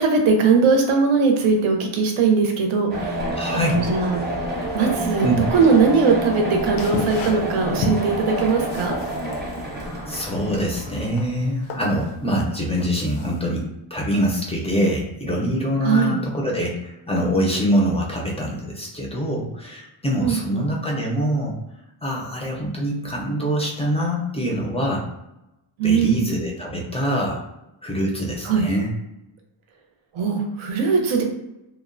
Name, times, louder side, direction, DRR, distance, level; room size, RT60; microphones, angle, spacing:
voice 1, 0.0-3.1 3.7-4.2 4.7-5.3 5.5-9.0 15.8-16.2 20.2-20.7 25.8-26.3 28.4-28.7 30.1-31.2, right 5 dB, 80° right, 3 dB, 0.6 m, -20 dB
sound 1, 2.9-11.5, equal, 20° right, 0.7 m, -28 dB
voice 2, 3.4-3.8 5.2-5.4 10.1-21.6 22.0-25.1 25.8-27.4 27.8-28.9, equal, 15° left, -3 dB, 0.4 m, -24 dB
sound 2, 6.8-13.6, left 4 dB, 80° left, 0.6 m, -34 dB
2.8 x 2.0 x 2.5 m, 0.91 s
wide cardioid pair, 155°, 48 cm